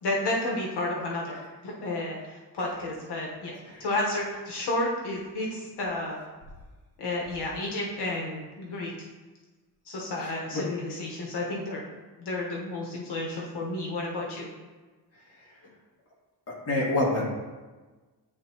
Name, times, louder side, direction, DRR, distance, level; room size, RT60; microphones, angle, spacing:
voice 1, 0.0-6.2 7.0-8.9 9.9-11.8 12.2-14.5, left 2 dB, 80° left, -3 dB, 1.2 m, -31 dB
voice 2, 10.2-10.7 15.1-15.7 16.5-17.2, left 2 dB, 40° left, -5 dB, 1.8 m, -30 dB
10.5 x 3.5 x 2.8 m, 1.3 s
wide cardioid pair, 140°, 40 cm